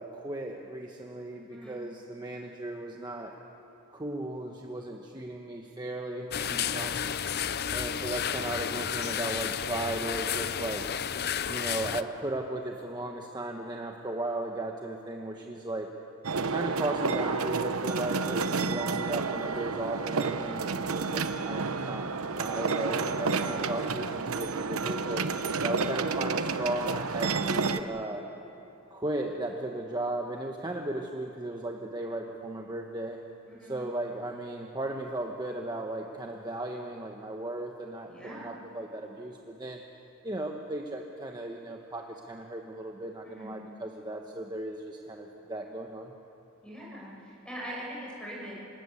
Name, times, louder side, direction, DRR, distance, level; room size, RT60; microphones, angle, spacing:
voice 1, 0.0-3.3 3.9-7.0 7.7-10.9 11.5-15.9 16.5-25.2 25.6-28.2 28.9-33.2 33.6-39.8 40.2-46.1, right 1 dB, 20° right, 2 dB, 1.2 m, -36 dB
sound 1, 6.3-12.0, left 8 dB, 45° left, 0.6 m, -32 dB
sound 2, 16.2-27.8, right 4 dB, 75° right, 1.0 m, -30 dB
voice 2, 23.3-23.7 33.5-33.7 38.0-38.5 43.2-43.5 46.6-48.6, equal, 5° left, -5 dB, 7.1 m, -42 dB
27.0 x 20.0 x 8.5 m, 2.9 s
head